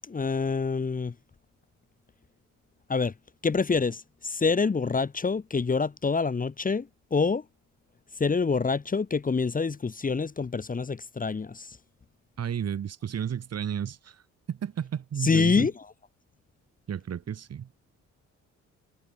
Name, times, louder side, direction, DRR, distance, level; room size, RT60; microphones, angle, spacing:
voice 1, 0.1-1.1 2.9-3.1 3.4-7.4 8.2-11.8 15.2-15.7, left 4 dB, 25° left, 1.7 m, -26 dB
voice 2, 12.4-14.2 14.5-15.7 16.9-17.7, right 8 dB, 55° right, 4.0 m, -32 dB
cardioid pair, 90°, 30 cm